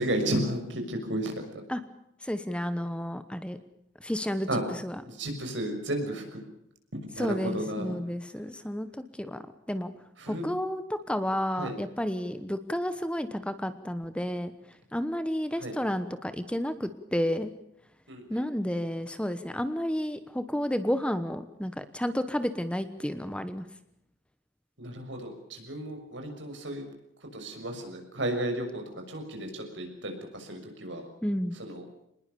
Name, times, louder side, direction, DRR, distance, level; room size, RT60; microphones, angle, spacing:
voice 1, 0.0-1.4 4.5-4.6 5.1-6.4 6.9-7.9 10.2-10.5 11.6-11.7 15.6-15.7 18.1-18.4 24.8-26.9 27.3-31.1 31.6-31.8, right 1 dB, 75° right, 4 dB, 6.4 m, -33 dB
voice 2, 2.2-3.6 4.0-5.0 7.2-9.9 10.3-14.5 14.9-17.5 18.3-23.6 31.2-31.6, equal, 5° left, 11 dB, 1.0 m, -31 dB
26.0 x 20.5 x 6.9 m, 0.78 s
head